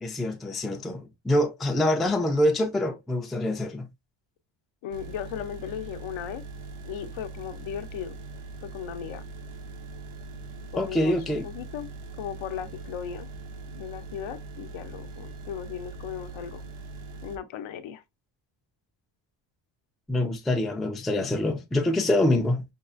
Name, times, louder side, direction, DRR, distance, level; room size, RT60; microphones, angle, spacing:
voice 1, 0.0-3.9 10.8-11.5 20.1-22.6, left 1 dB, ahead, 0.4 m, -25 dB
voice 2, 4.8-6.4 6.8-8.2 8.6-9.2 10.7-11.9 12.2-13.3 13.7-16.6 17.2-18.0, left 9 dB, 70° left, 0.7 m, -36 dB
sound 1, 4.9-17.4, right 3 dB, 90° right, 1.1 m, -41 dB
5.4 x 2.4 x 2.4 m
cardioid pair, 135°, 48 cm